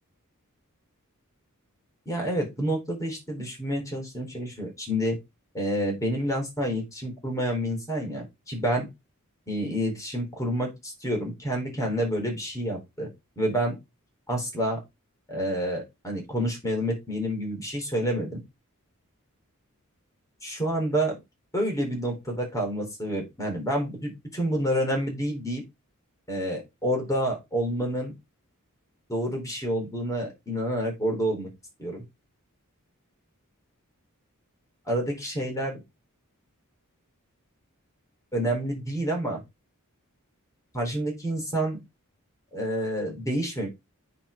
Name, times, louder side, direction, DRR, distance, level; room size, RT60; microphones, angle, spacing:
voice 1, 2.1-5.2 5.5-8.9 9.5-13.1 13.4-13.8 14.3-14.8 15.3-18.4 20.4-21.2 21.5-25.6 26.3-28.1 29.1-31.5 31.8-32.0 34.9-35.8 38.3-39.4 40.7-41.8 42.5-43.7, equal, 15° left, 1 dB, 3.7 m, -28 dB
8.9 x 4.4 x 5.0 m, 0.22 s
head